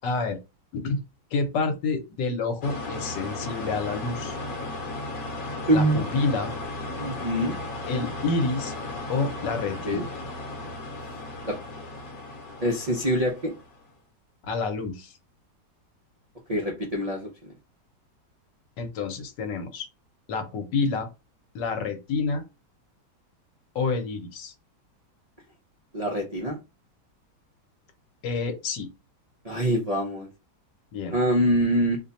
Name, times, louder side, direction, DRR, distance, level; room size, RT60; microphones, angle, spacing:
voice 1, 0.0-0.4 0.7-1.0 1.3-4.4 5.7-6.5 7.9-8.7 9.1-10.1 14.5-15.1 18.8-19.9 20.3-21.1 21.5-22.4 23.7-24.5 28.2-28.9 30.9-31.2, left 4 dB, 75° left, 6 dB, 1.5 m, -28 dB
sound 1, 2.6-13.8, left 2 dB, 60° left, 1.2 m, -35 dB
voice 2, 5.7-6.0 7.0-7.6 9.8-10.0 11.4-11.6 12.6-13.5 16.5-17.5 25.9-26.6 29.4-30.3 31.1-32.0, right 1 dB, 65° right, -1 dB, 0.3 m, -24 dB
3.1 x 2.2 x 3.9 m, 0.26 s
omnidirectional pair, 1.9 m